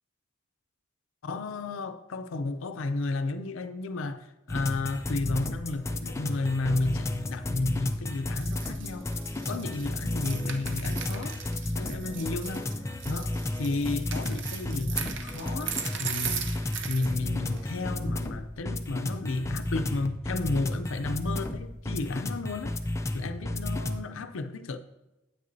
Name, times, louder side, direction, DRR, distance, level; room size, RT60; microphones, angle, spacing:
voice 1, 1.2-9.1 9.5-11.4 11.7-12.7 13.1-13.3 13.6-16.5 16.9-22.8 23.1-24.8, left 3 dB, 75° left, 0.5 m, -32 dB
sound 1, 4.5-24.0, left 1 dB, 15° left, 0.4 m, -33 dB
dropping pins, 8.4-17.2 17.5-17.6, right 8 dB, 65° right, 0.7 m, -38 dB
9.5 x 8.4 x 2.7 m
head